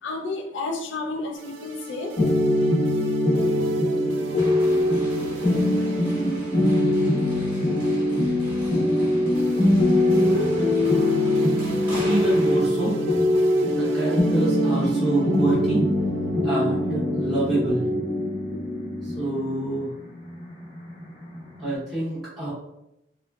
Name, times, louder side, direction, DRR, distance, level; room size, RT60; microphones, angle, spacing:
voice 1, 0.0-2.2, left 3 dB, 75° left, 3 dB, 0.5 m, -31 dB
sound 1, 1.3-17.4, right 2 dB, 85° right, 0.4 m, -39 dB
sound 2, 2.2-21.7, left 1 dB, 35° left, 0.7 m, -22 dB
sound 3, 4.4-12.6, equal, 25° right, 1.0 m, -41 dB
voice 2, 12.0-13.0 13.7-15.8 16.4-17.9 19.0-19.9 21.6-22.5, right 2 dB, ahead, -12 dB, 0.7 m, -26 dB
3.0 x 2.2 x 2.2 m, 0.86 s
head